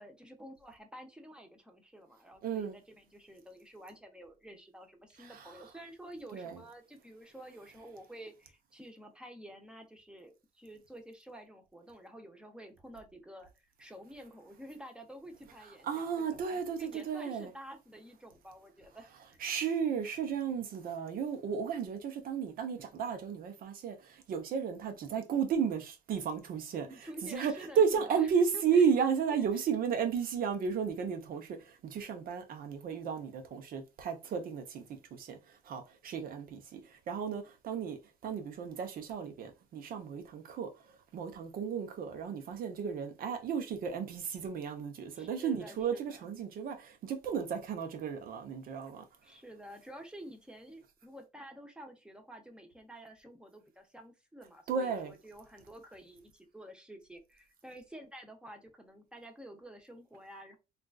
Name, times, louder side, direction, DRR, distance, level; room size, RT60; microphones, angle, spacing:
voice 1, 0.0-13.5 13.8-19.4 26.8-28.3 28.5-29.7 45.1-46.3 49.2-60.6, right 1 dB, 5° right, 0.8 m, -50 dB
voice 2, 2.4-2.8 5.2-5.5 6.3-6.6 15.8-17.5 19.4-24.0 24.3-31.5 31.9-35.4 35.7-36.8 37.1-40.7 41.1-49.0 54.7-55.1, right 6 dB, 60° right, 0.9 m, -33 dB
3.7 x 2.5 x 2.3 m
cardioid pair, 110°, 17 cm